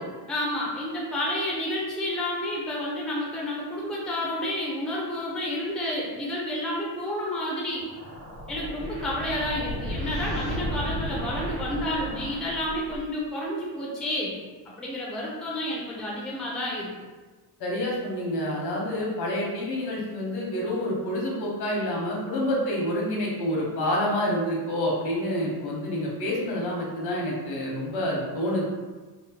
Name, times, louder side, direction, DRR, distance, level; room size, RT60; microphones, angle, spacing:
voice 1, 0.3-7.8 8.5-14.3 14.8-16.9, left 1 dB, ahead, -4 dB, 0.3 m, -30 dB
sound 1, 7.7-13.2, equal, 85° right, 1.1 m, -34 dB
voice 2, 17.6-28.7, left 1 dB, 85° left, -3 dB, 0.9 m, -28 dB
2.8 x 2.0 x 2.7 m, 1.3 s
cardioid pair, 160°, 38 cm